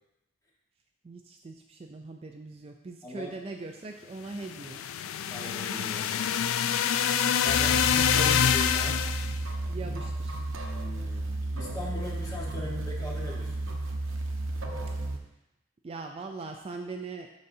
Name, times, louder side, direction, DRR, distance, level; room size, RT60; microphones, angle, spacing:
voice 1, 1.0-5.0 8.1-8.3 9.7-10.4 15.8-17.3, right 3 dB, 30° right, 4 dB, 0.3 m, -41 dB
voice 2, 3.0-3.4 5.3-6.4 7.4-9.0 10.4-13.6, left 2 dB, 20° left, -3 dB, 1.3 m, -39 dB
sound 1, 4.4-9.4, left 8 dB, 90° left, 0.3 m, -26 dB
sound 2, 7.5-15.2, right 2 dB, 75° right, 0.8 m, -33 dB
12.0 x 4.0 x 2.7 m, 0.91 s
head